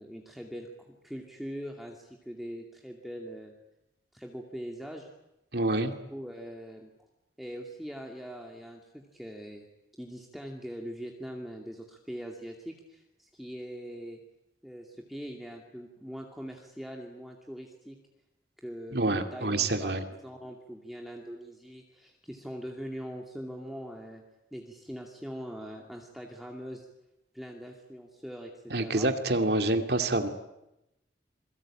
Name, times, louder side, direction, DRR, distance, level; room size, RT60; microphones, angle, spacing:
voice 1, 0.0-3.5 4.1-5.1 5.6-5.8 6.1-6.9 7.4-9.7 10.0-14.2 14.6-18.0 18.6-24.2 24.5-26.9 27.3-29.1, equal, ahead, 0 dB, 2.4 m, -42 dB
voice 2, 5.5-5.9 18.9-20.0 28.7-30.3, right 2 dB, 60° right, 6 dB, 2.6 m, -27 dB
27.5 x 22.5 x 8.8 m, 0.89 s
head